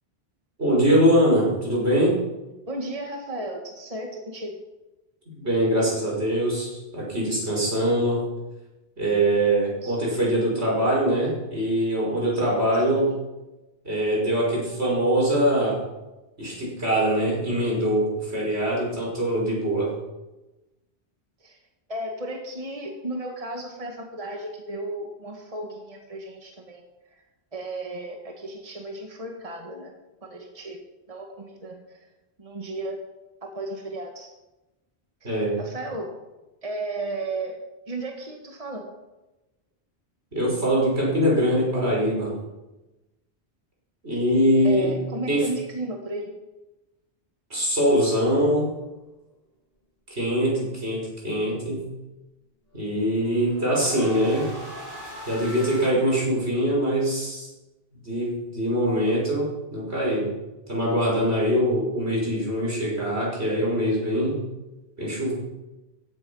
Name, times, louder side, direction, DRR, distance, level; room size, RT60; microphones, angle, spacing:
voice 1, 0.6-2.2 5.4-8.2 9.0-13.1 13.8-15.8 16.4-19.9 35.2-35.6 40.3-42.4 44.0-44.9 45.3-45.5 47.5-48.7 50.1-51.9 52.7-54.5 55.3-57.5 58.0-60.3 60.7-64.4 65.0-65.3, equal, 80° right, -4 dB, 6.2 m, -23 dB
voice 2, 2.7-4.6 9.8-10.0 12.8-13.0 21.4-21.6 21.9-26.8 27.1-27.2 27.5-29.9 30.2-30.8 31.1-32.1 32.4-33.0 33.4-34.3 35.2-35.3 35.6-36.1 36.6-37.5 37.9-38.8 44.6-46.3, right 2 dB, 35° right, 2 dB, 1.7 m, -34 dB
sound 1, 48.1-49.0 52.8-55.9, equal, 50° left, 5.2 m, -40 dB
15.5 x 12.5 x 5.5 m, 1.0 s
omnidirectional pair, 1.1 m